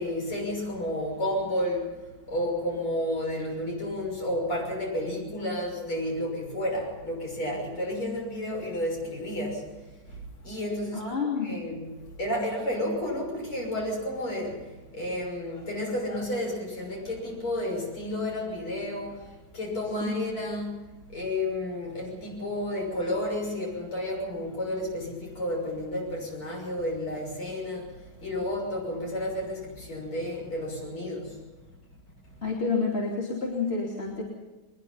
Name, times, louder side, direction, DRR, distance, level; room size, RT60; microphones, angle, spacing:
voice 1, 0.0-11.1 11.4-20.8 21.1-31.4 32.2-32.3, left 1 dB, 85° left, 0 dB, 7.3 m, -31 dB
voice 2, 10.9-11.6 20.0-20.2 32.4-34.2, left 4 dB, 30° left, -3 dB, 3.1 m, -29 dB
22.5 x 20.5 x 5.7 m, 1.2 s
omnidirectional pair, 2.3 m